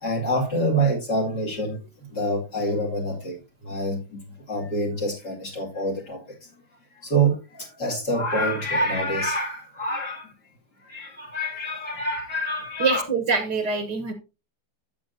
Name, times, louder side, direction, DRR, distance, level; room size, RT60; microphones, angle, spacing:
voice 1, 0.0-1.8 2.1-3.3 3.7-4.2 4.5-6.2 7.0-10.3 10.9-13.0, right 1 dB, 55° left, -4 dB, 3.0 m, -26 dB
voice 2, 12.8-14.1, right 4 dB, 60° right, 8 dB, 1.6 m, -24 dB
12.0 x 7.9 x 2.7 m, 0.29 s
omnidirectional pair, 2.2 m